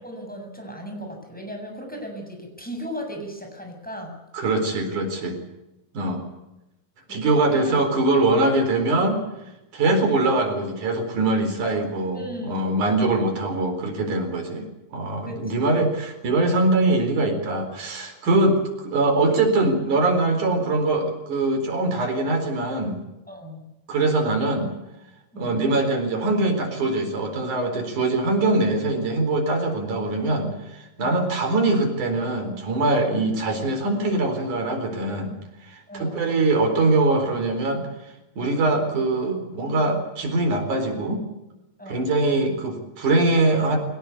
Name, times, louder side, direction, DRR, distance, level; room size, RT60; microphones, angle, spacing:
voice 1, 0.0-4.2 7.1-7.8 12.1-13.1 15.3-15.8 23.3-23.7 25.3-25.6 29.7-29.8 31.0-31.2 35.9-36.5 41.8-42.1, equal, ahead, 2 dB, 7.1 m, -37 dB
voice 2, 4.3-5.4 5.9-6.3 7.1-9.2 9.7-23.0 23.9-24.7 25.4-35.3 35.6-37.8 38.4-41.2 41.9-43.8, right 2 dB, 65° right, 5 dB, 5.7 m, -22 dB
23.0 x 19.0 x 8.4 m, 0.96 s
omnidirectional pair, 3.8 m